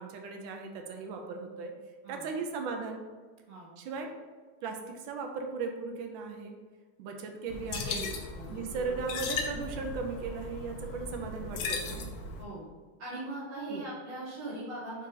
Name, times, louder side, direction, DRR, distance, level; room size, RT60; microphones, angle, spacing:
voice 1, 0.0-1.7 2.1-3.0 3.8-4.1 4.6-6.6 7.0-8.1 8.5-12.1 13.7-13.8, right 4 dB, 75° right, 4 dB, 1.2 m, -37 dB
sound 1, 7.5-12.5, left 4 dB, 70° left, 1.2 m, -37 dB
voice 2, 7.8-8.6 12.4-12.6 13.0-15.1, right 2 dB, 45° right, -6 dB, 0.7 m, -40 dB
4.7 x 2.9 x 3.7 m, 1.4 s
omnidirectional pair, 2.4 m